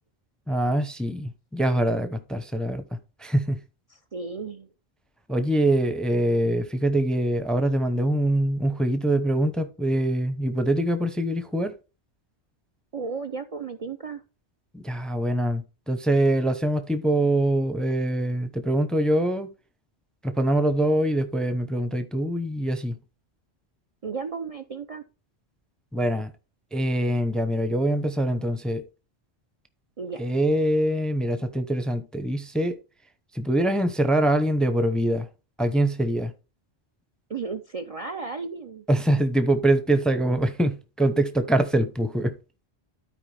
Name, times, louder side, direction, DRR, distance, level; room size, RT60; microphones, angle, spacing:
voice 1, 0.5-2.8 3.2-3.6 5.3-11.7 14.7-19.5 20.2-22.9 25.9-26.3 26.7-28.8 30.2-32.7 33.3-35.3 35.6-36.3 38.9-42.3, right 1 dB, ahead, 0.7 m, -24 dB
voice 2, 3.9-4.7 12.9-14.2 24.0-25.0 30.0-30.2 37.3-38.9, right 4 dB, 40° right, 0.6 m, -34 dB
13.0 x 4.7 x 3.4 m
omnidirectional pair, 1.1 m